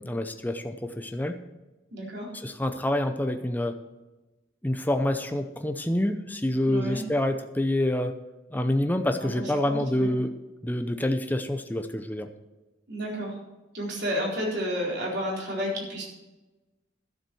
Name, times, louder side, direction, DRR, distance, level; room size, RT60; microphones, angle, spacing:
voice 1, 0.0-1.3 2.4-3.8 4.6-8.1 8.5-10.3 10.6-12.3, left 1 dB, 10° left, 6 dB, 0.6 m, -27 dB
voice 2, 1.9-2.3 6.7-7.0 9.2-10.1 12.9-13.4 13.7-16.1, equal, 60° right, -3 dB, 4.2 m, -31 dB
12.0 x 7.4 x 6.2 m, 1.1 s
head